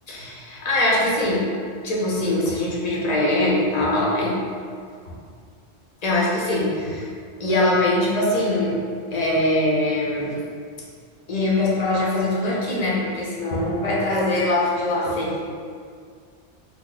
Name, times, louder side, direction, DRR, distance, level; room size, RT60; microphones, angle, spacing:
voice 1, 0.1-1.5 1.8-4.4 6.0-7.1 7.4-8.8 9.1-10.4 11.3-15.4, left 1 dB, 45° left, -5 dB, 0.6 m, -22 dB
3.0 x 2.1 x 3.9 m, 2.1 s
omnidirectional pair, 1.2 m